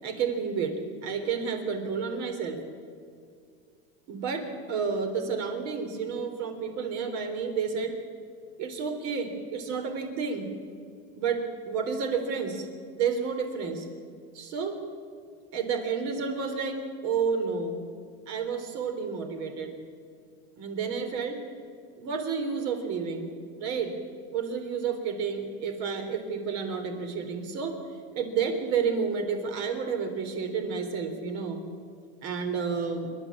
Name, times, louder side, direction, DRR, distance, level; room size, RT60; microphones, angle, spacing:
voice 1, 0.0-2.6 4.1-8.0 8.6-10.5 11.2-12.7 13.0-13.9 14.3-14.7 15.5-17.8 18.3-19.8 20.6-21.4 22.0-23.3 23.6-24.0 24.3-27.8 28.1-31.7 32.2-33.1, right 5 dB, 60° right, 6 dB, 3.8 m, -30 dB
27.0 x 12.0 x 8.6 m, 2.3 s
cardioid pair, 150°, 30 cm